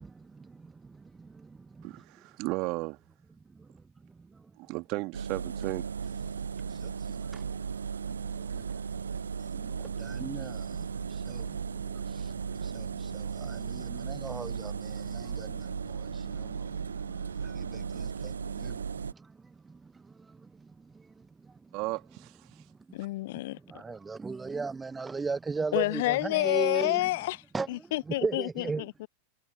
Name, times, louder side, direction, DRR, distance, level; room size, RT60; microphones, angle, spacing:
voice 1, 0.0-2.0 3.5-3.7 4.3-4.4 6.2-7.6 8.1-9.0 9.4-21.5 22.5-22.6 23.6-27.1 27.5-28.8, right 4 dB, 15° right, 1.0 m, -39 dB
voice 2, 1.8-3.0 4.6-5.9 21.7-22.3, right 25 dB, 40° right, 2.1 m, -34 dB
Engine, 5.1-19.1, right 6 dB, 70° right, 0.7 m, -36 dB
voice 3, 22.9-23.6 25.7-27.4 27.7-29.1, left 19 dB, 50° left, 0.9 m, -29 dB
figure-of-eight pair, 90°, 0 cm